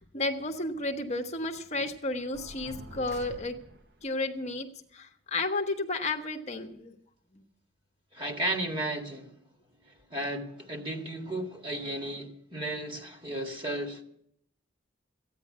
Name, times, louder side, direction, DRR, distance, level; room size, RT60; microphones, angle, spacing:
voice 1, 0.0-3.5 4.0-4.7 4.9-6.9, left 2 dB, 40° left, 1.1 m, -32 dB
sound 1, 2.3-4.0, right 1 dB, 60° right, 1.1 m, -46 dB
voice 2, 8.1-9.4 10.1-14.0, right 1 dB, 30° right, 1.9 m, -34 dB
15.0 x 9.5 x 8.4 m
head